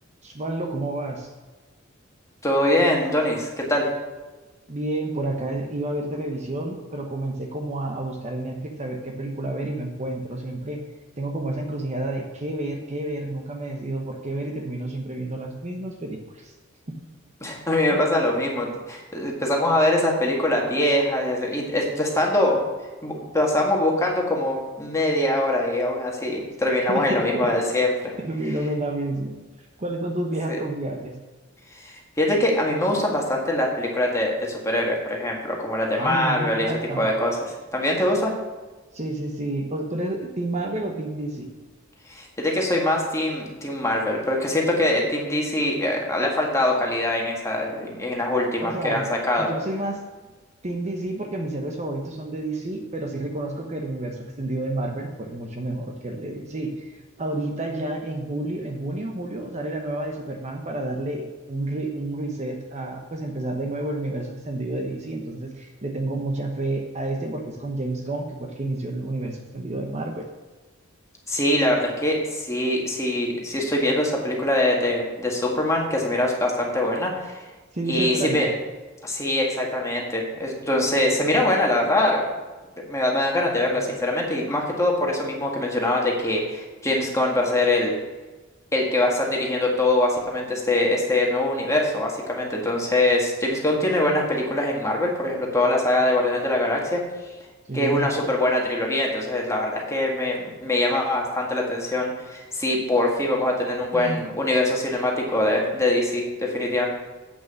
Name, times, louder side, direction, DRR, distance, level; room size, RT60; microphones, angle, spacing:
voice 1, 0.2-1.3 4.7-10.8 11.2-16.5 17.9-18.0 26.9-27.7 28.2-29.3 29.8-31.1 36.0-37.1 38.9-41.5 48.6-49.1 49.4-50.0 50.6-70.2 77.7-78.5 83.8-83.9 97.7-98.1 103.9-104.2, right 1 dB, 35° right, 3 dB, 1.0 m, -30 dB
voice 2, 2.4-3.9 17.4-22.6 23.0-27.9 30.5-30.6 31.8-36.7 37.0-38.3 42.1-49.5 71.3-77.4 77.9-78.5 79.0-82.3 82.9-87.9 88.7-97.0 97.7-106.9, left 1 dB, 15° left, -1 dB, 1.9 m, -23 dB
8.3 x 6.3 x 6.9 m, 1.3 s
head